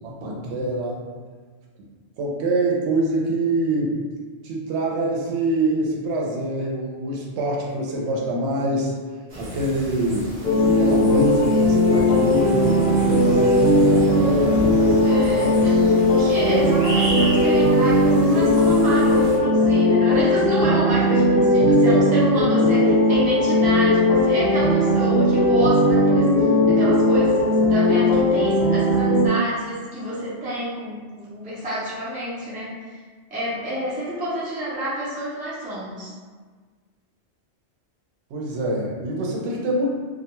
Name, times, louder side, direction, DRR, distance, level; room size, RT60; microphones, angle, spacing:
voice 1, 0.0-1.0 2.2-4.0 4.4-8.9 9.4-10.3 10.6-14.8 15.3-15.5 16.4-16.8 21.8-22.1 26.8-26.9 38.3-39.9, right 1 dB, 80° right, -2 dB, 0.8 m, -25 dB
sound 1, 9.3-19.4, equal, 50° right, 0.6 m, -33 dB
sound 2, 10.4-29.3, left 1 dB, 45° left, 0.6 m, -18 dB
voice 2, 15.0-33.0 33.3-36.1, right 1 dB, 10° right, -8 dB, 0.4 m, -29 dB
2.3 x 2.2 x 2.8 m, 1.5 s
omnidirectional pair, 1.2 m